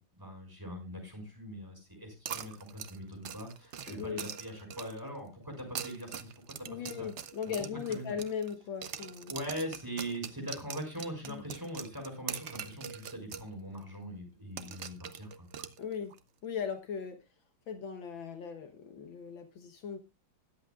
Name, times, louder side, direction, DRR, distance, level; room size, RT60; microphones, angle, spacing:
voice 1, 0.0-7.1 7.9-8.1 9.3-15.5, equal, 10° right, 1 dB, 5.7 m, -42 dB
sound 1, 2.3-5.1 5.6-8.6 8.8-13.5 13.8-13.9 14.6-16.2, right 8 dB, 65° right, 0.7 m, -43 dB
voice 2, 3.9-4.3 6.7-9.3 11.3-11.4 15.8-16.2 16.4-17.3 17.7-20.0, left 7 dB, 70° left, 7 dB, 1.8 m, -38 dB
20.5 x 8.0 x 2.4 m, 0.23 s
omnidirectional pair, 2.3 m